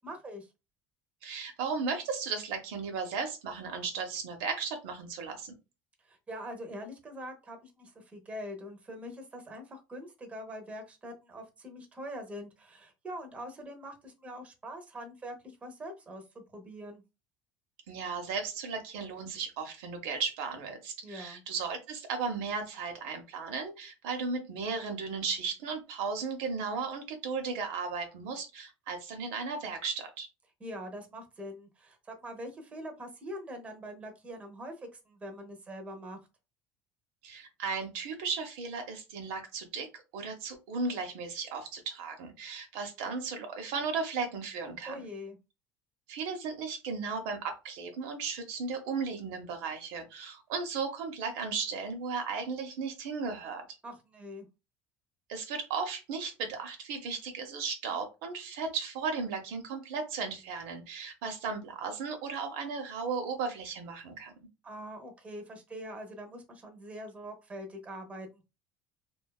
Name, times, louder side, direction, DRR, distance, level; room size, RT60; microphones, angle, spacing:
voice 1, 0.0-0.5 6.0-17.0 21.0-21.4 30.6-36.2 44.9-45.4 53.8-54.5 64.6-68.4, equal, 20° right, 4 dB, 0.7 m, -43 dB
voice 2, 1.2-5.5 17.9-30.3 37.2-45.1 46.1-53.6 55.3-64.3, right 5 dB, 80° right, 5 dB, 0.7 m, -35 dB
2.6 x 2.2 x 2.2 m, 0.27 s
supercardioid pair, 110°, 6 cm